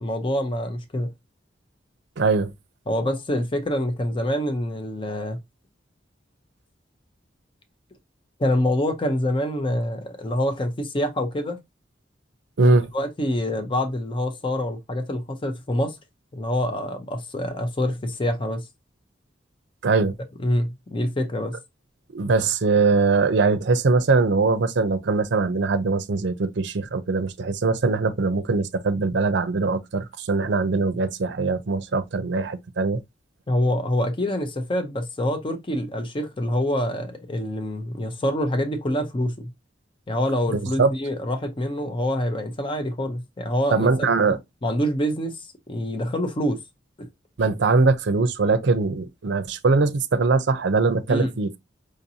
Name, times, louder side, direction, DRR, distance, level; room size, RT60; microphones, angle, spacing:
voice 1, 0.0-1.1 2.9-5.4 8.4-11.6 12.6-16.0 16.3-18.7 20.4-21.6 33.5-39.5 40.1-44.1 44.6-45.4 45.7-46.6 47.0-47.1 51.1-51.3, left 1 dB, 30° left, 0.6 m, -26 dB
voice 2, 2.2-2.5 12.6-12.9 19.8-20.1 22.1-33.0 40.5-40.9 43.7-44.4 47.4-51.6, right 4 dB, 65° right, 0.5 m, -21 dB
5.0 x 2.6 x 2.7 m
head